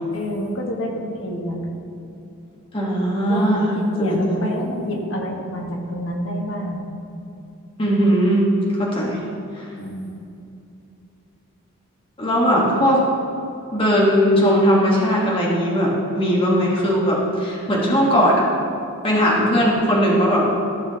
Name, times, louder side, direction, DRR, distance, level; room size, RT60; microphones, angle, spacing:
voice 1, 0.1-1.6 3.3-6.9 9.8-10.1, equal, 65° left, -1 dB, 1.4 m, -28 dB
voice 2, 2.7-3.7 4.0-4.4 7.8-8.5 8.8-9.2 9.6-9.7 12.2-13.0 13.7-18.4 19.0-20.4, equal, 25° left, -5 dB, 1.3 m, -18 dB
14.5 x 6.0 x 2.9 m, 2.7 s
head